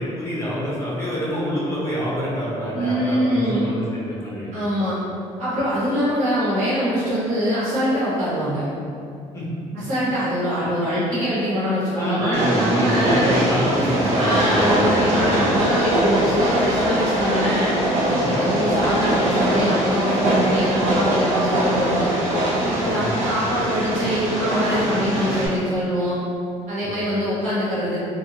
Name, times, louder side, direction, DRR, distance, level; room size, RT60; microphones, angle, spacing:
voice 1, 0.0-4.5 4.8-4.9 9.3-9.4 9.7-9.8 11.9-15.2 18.1-18.3 22.8-23.1 26.8-27.0, equal, 20° left, -8 dB, 0.7 m, -27 dB
voice 2, 2.7-3.7 4.5-5.0 5.4-8.6 9.7-13.3 14.2-17.8 18.0-22.1 22.6-26.2 26.7-28.0, equal, 85° right, -10 dB, 1.3 m, -23 dB
Train, 12.3-25.5, right 1 dB, 60° right, 0.6 m, -22 dB
sound 1, 12.7-14.2 14.6-14.9 15.3-15.6 15.9-16.2 16.5-16.8 17.1-17.3 17.7-17.9 18.3-18.6 18.9-19.1 19.5-19.8 20.2-20.4 20.9-21.0 21.5-21.9 22.3-23.8, left 1 dB, 70° left, 0.6 m, -36 dB
2.5 x 2.4 x 2.8 m, 2.4 s
cardioid pair, 150°, 13 cm